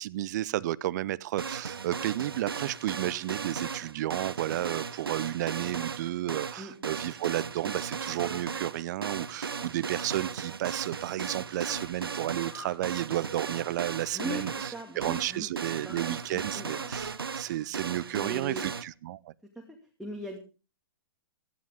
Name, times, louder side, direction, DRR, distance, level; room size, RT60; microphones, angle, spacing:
voice 1, 0.0-19.3, right 14 dB, 50° right, 0.6 m, -32 dB
sound 1, 1.4-18.8, right 5 dB, 80° right, 0.9 m, -36 dB
sound 2, 10.9-11.3 11.6-12.0 12.2-12.8 13.1-13.4 14.2-14.5 14.9-15.2 15.8-16.3 16.7-17.1, left 2 dB, 90° left, 3.3 m, -48 dB
voice 2, 14.1-15.5 15.8-16.7 18.1-18.7 19.6-19.7 20.0-20.4, right 1 dB, ahead, 2.4 m, -39 dB
17.5 x 13.5 x 3.5 m
figure-of-eight pair, 110°, 12 cm